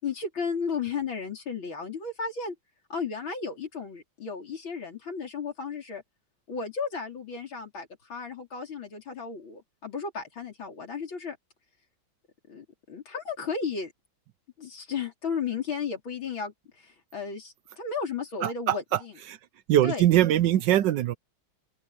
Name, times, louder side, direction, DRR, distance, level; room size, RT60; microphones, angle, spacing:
voice 1, 0.0-2.6 2.9-6.0 6.5-11.4 12.5-13.9 14.6-19.2 19.8-20.1, left 5 dB, 75° left, 4.7 m, -34 dB
voice 2, 18.4-18.8 19.7-21.2, right 12 dB, 70° right, 1.2 m, -22 dB
open air
omnidirectional pair, 2.2 m